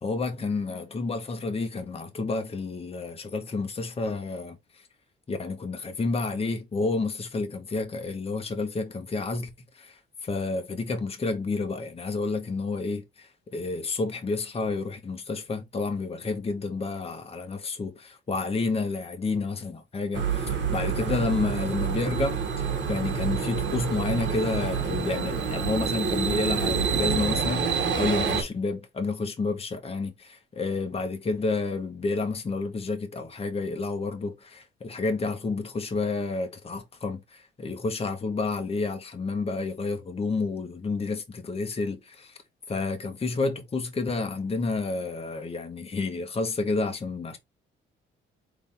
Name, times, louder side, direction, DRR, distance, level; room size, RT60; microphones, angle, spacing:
voice 1, 0.0-4.6 5.3-9.5 9.8-42.3 42.7-47.4, left 3 dB, 30° left, 1.2 m, -30 dB
sound 1, 20.1-28.4, right 6 dB, 65° right, 1.7 m, -27 dB
3.9 x 3.5 x 3.4 m
cardioid pair, 90°, 20 cm